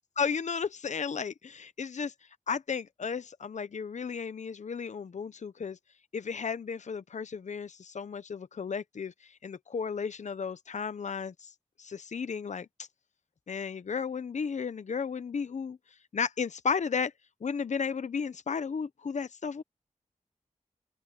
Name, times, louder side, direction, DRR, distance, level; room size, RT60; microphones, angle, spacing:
voice 1, 0.2-2.1 2.5-5.8 6.1-11.5 11.8-12.9 13.5-15.8 16.1-17.1 17.4-19.6, left 6 dB, 65° left, 0.7 m, -34 dB
open air
wide cardioid pair, 110°, 13 cm